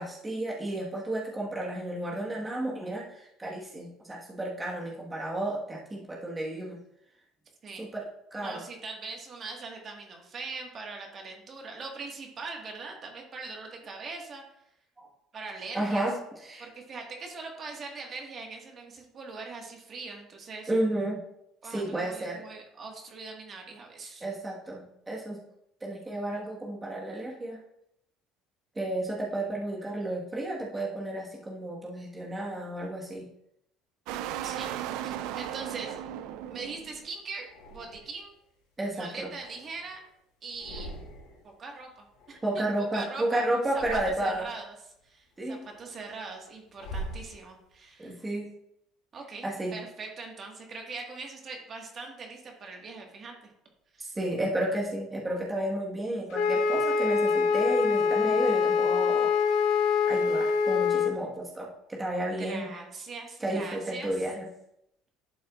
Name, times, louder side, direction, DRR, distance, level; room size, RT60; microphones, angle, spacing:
voice 1, 0.0-6.8 7.8-8.0 8.3-8.6 15.0-15.1 15.7-16.7 20.7-21.2 21.6-22.5 24.2-25.4 25.8-27.6 28.7-33.3 38.8-39.3 42.4-44.5 45.4-45.6 48.0-48.5 49.4-49.8 54.0-59.3 60.0-62.7 63.4-64.5, right 1 dB, 15° right, -3 dB, 1.5 m, -32 dB
voice 2, 8.4-14.4 15.3-16.1 16.6-20.7 21.6-24.2 34.4-34.8 35.0-36.0 36.5-38.4 38.9-40.0 40.4-40.9 41.4-42.6 42.9-43.4 43.7-44.7 45.0-45.3 45.8-48.2 49.1-49.5 49.7-53.3 53.9-54.1 62.4-64.1, right 4 dB, 40° right, 1 dB, 1.6 m, -41 dB
sound 1, 34.1-37.1, right 11 dB, 80° right, 0.4 m, -36 dB
sound 2, 36.0-36.8 37.4-38.4 38.8-40.1 40.4-41.5 41.8-43.2 43.6-44.6 45.1-47.8, right 1 dB, 90° left, 2.4 m, -45 dB
Wind instrument woodwind instrument, 56.3-61.1, left 5 dB, 70° left, 0.7 m, -24 dB
11.0 x 6.1 x 2.4 m, 0.78 s
cardioid pair, 115°, 0 cm